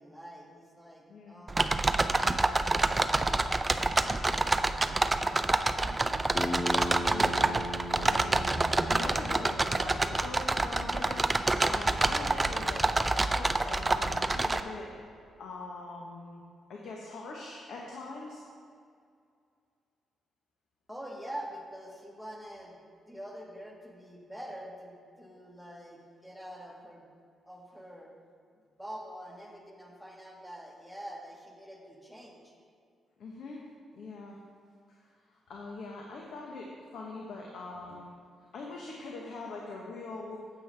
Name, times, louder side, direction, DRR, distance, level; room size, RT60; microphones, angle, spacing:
voice 1, 0.0-4.9 20.9-22.7 23.1-27.1 27.4-28.1 28.7-32.5, equal, 5° left, -1 dB, 1.5 m, -46 dB
voice 2, 1.1-1.5 5.6-6.0 7.1-8.5 8.9-11.4 11.7-14.9 15.4-16.4 16.7-18.4 33.2-33.6 33.9-34.4 34.9-38.1 38.5-40.4, left 3 dB, 75° left, -1 dB, 1.0 m, -42 dB
sound 1, 1.5-14.6, right 2 dB, 20° right, 0.4 m, -27 dB
Bass guitar, 6.3-10.6, left 1 dB, 40° left, 1.8 m, -38 dB
9.1 x 7.6 x 3.3 m, 2.3 s
cardioid pair, 80°, 0 cm